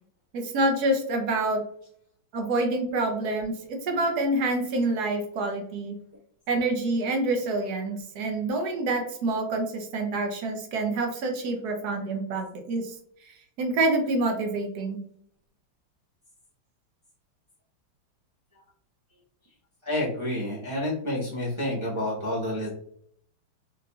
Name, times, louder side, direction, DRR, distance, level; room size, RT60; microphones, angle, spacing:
voice 1, 0.3-1.6 2.3-6.0 6.5-12.9 13.3-15.0, right 2 dB, 65° right, 3 dB, 1.1 m, -27 dB
voice 2, 19.8-22.7, left 1 dB, 20° right, -7 dB, 0.9 m, -29 dB
4.7 x 2.5 x 2.3 m, 0.66 s
omnidirectional pair, 2.2 m